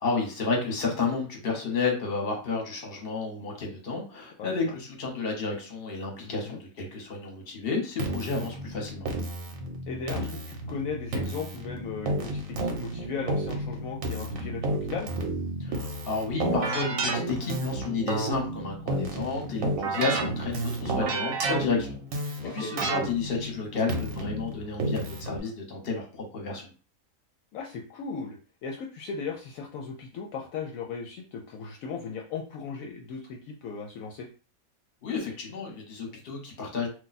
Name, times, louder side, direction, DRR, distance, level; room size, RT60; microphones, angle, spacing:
voice 1, 0.0-9.1 15.6-26.7 35.0-36.9, left 4 dB, 45° left, 1 dB, 1.1 m, -31 dB
voice 2, 4.4-4.7 6.2-6.6 9.9-15.1 22.4-22.7 27.5-34.3, left 5 dB, 75° left, 0 dB, 0.9 m, -37 dB
Keyboard (musical), 8.0-25.4, right 2 dB, 70° right, 1.1 m, -31 dB
2.5 x 2.2 x 4.0 m, 0.36 s
omnidirectional pair, 1.5 m